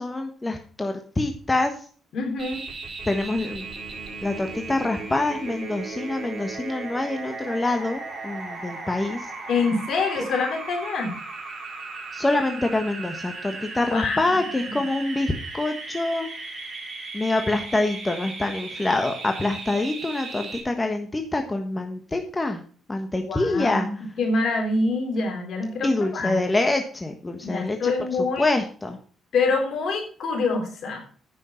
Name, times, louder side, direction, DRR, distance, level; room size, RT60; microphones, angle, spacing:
voice 1, 0.0-1.7 3.1-3.6 4.2-9.2 10.2-10.3 12.1-16.3 17.1-22.6 22.9-24.0 25.8-27.9 28.4-29.0, left 2 dB, 20° left, 5 dB, 1.3 m, -25 dB
voice 2, 2.1-2.6 9.5-11.2 13.9-14.8 23.3-26.4 27.4-28.5 29.3-31.0, left 3 dB, 65° left, 3 dB, 3.6 m, -26 dB
sound 1, 2.4-20.6, right 3 dB, 50° right, 4.5 m, -36 dB
9.3 x 6.4 x 5.7 m, 0.42 s
cardioid pair, 90°, 0 cm